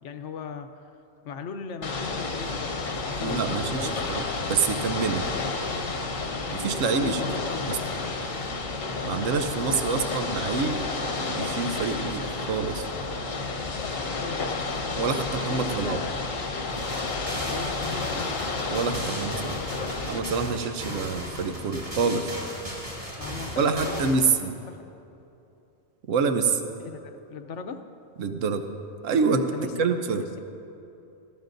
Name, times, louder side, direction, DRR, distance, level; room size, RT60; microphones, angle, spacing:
voice 1, 0.0-0.8 1.2-4.1 7.0-8.2 9.9-10.4 13.8-14.6 15.5-16.1 17.5-18.4 23.2-24.3 24.7-24.8 26.8-27.9 29.5-30.4, left 5 dB, 70° left, 8 dB, 1.0 m, -38 dB
Ocean / Boat Water vehicle, 1.8-20.2, left 3 dB, 90° left, 1.5 m, -31 dB
voice 2, 3.2-4.2 4.5-5.3 6.5-7.2 7.7-7.8 9.0-10.8 11.2-12.9 15.0-16.0 18.7-19.6 20.1-22.3 23.6-24.5 26.1-26.7 28.2-28.7 29.0-30.2, right 5 dB, 75° right, 7 dB, 1.1 m, -26 dB
sound 1, 16.8-24.2, equal, 25° right, 2.6 m, -36 dB
19.5 x 15.0 x 2.6 m, 2.8 s
omnidirectional pair, 1.3 m